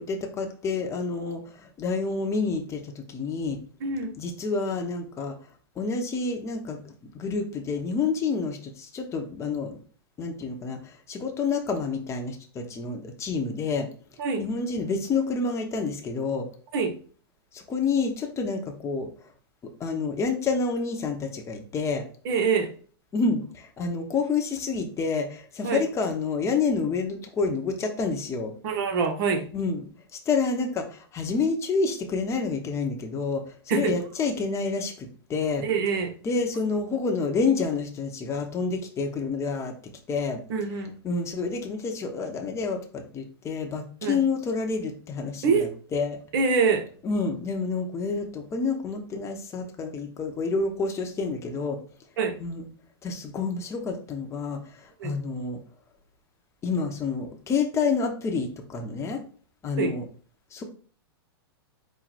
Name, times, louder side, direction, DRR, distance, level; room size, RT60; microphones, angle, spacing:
voice 1, 0.0-3.6 4.2-5.3 5.8-9.8 10.2-10.8 11.1-13.9 14.4-16.5 17.5-19.1 19.8-22.0 23.1-28.5 29.5-29.9 30.3-35.6 36.2-39.7 40.1-40.4 41.0-46.2 47.0-51.8 52.4-52.7 53.0-55.6 56.6-59.2 59.6-60.0 60.5-60.6, left 4 dB, 20° left, 3 dB, 0.8 m, -28 dB
voice 2, 3.8-4.1 14.2-14.4 16.7-16.9 22.2-22.7 25.6-25.8 28.6-29.4 33.7-33.9 35.6-36.1 40.5-40.9 44.0-44.2 45.4-45.6 46.3-46.8 52.2-52.3 55.0-55.2 59.8-59.9, right 5 dB, 60° right, 5 dB, 1.0 m, -24 dB
4.3 x 2.2 x 4.1 m, 0.43 s
hypercardioid pair, 120°, 13 cm